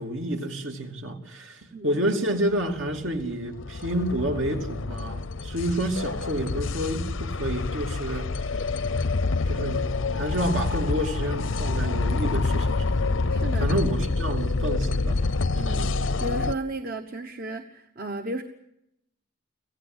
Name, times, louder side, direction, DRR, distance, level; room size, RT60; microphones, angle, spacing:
voice 1, 0.0-8.5 9.5-13.0 13.6-15.2, right 1 dB, 70° right, 2.9 m, -29 dB
voice 2, 1.7-2.0 13.3-13.7 15.5-15.9 16.2-18.4, right 2 dB, 45° right, 1.1 m, -34 dB
sound 1, 2.6-16.5, left 3 dB, 80° left, 0.7 m, -27 dB
26.0 x 16.5 x 8.1 m
head